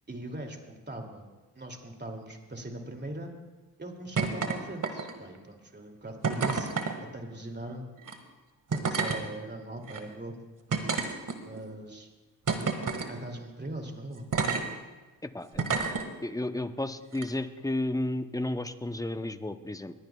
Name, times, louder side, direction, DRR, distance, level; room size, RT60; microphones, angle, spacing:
voice 1, 0.1-1.2 1.5-3.3 3.8-6.7 7.1-7.8 8.7-10.4 11.4-12.1 13.1-14.3, right 1 dB, 25° right, 3 dB, 2.6 m, -40 dB
sound 1, 4.2-4.6 4.8-5.3 6.2-6.9 8.0-8.1 8.7-9.2 9.9-10.0 10.7-11.6 12.5-13.1 14.3-14.6 15.6-16.0 17.1-17.3, right 5 dB, 45° right, 1.9 m, -29 dB
voice 2, 15.2-15.7 16.2-19.9, left 1 dB, 10° left, 10 dB, 0.8 m, -32 dB
21.5 x 16.5 x 2.3 m, 1.2 s
hypercardioid pair, 40°, 45 cm